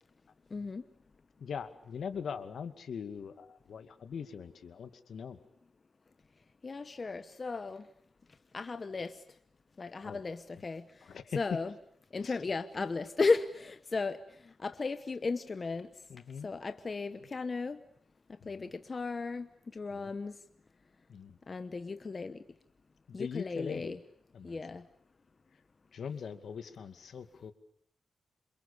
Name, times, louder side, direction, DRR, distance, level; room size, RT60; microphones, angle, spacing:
voice 1, 0.5-0.8 6.6-7.9 8.5-9.2 9.8-10.8 11.3-11.7 12.1-14.2 14.6-15.9 16.4-17.8 18.5-20.4 21.5-22.4 23.1-24.0 24.4-24.8, left 4 dB, 35° left, 1.1 m, -35 dB
voice 2, 1.4-5.4 10.0-10.2 11.1-11.4 12.2-12.3 16.1-16.5 18.4-18.5 19.9-20.1 21.1-21.4 23.1-24.0 24.3-24.6 25.9-27.5, left 6 dB, 70° left, 2.3 m, -41 dB
28.0 x 27.5 x 6.9 m
wide cardioid pair, 120°, 0 cm